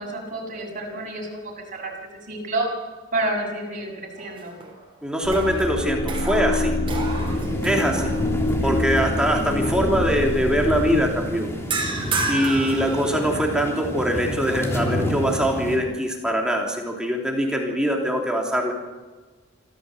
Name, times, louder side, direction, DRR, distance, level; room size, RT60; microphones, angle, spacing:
voice 1, 0.0-2.7 3.1-4.6 8.0-9.6, right 2 dB, 40° right, -1 dB, 6.8 m, -31 dB
sound 1, 4.2-4.9 5.2-8.5 9.0-9.2 11.7-13.6, right 3 dB, 25° right, 5.0 m, -31 dB
voice 2, 5.0-6.7 7.6-8.1 8.6-11.5 12.3-18.7, equal, 5° right, 0 dB, 3.2 m, -23 dB
sound 2, 5.2-11.1, left 1 dB, 50° left, 2.8 m, -26 dB
sound 3, 6.9-15.8, equal, 15° left, 3.3 m, -30 dB
26.0 x 14.5 x 8.0 m, 1.3 s
head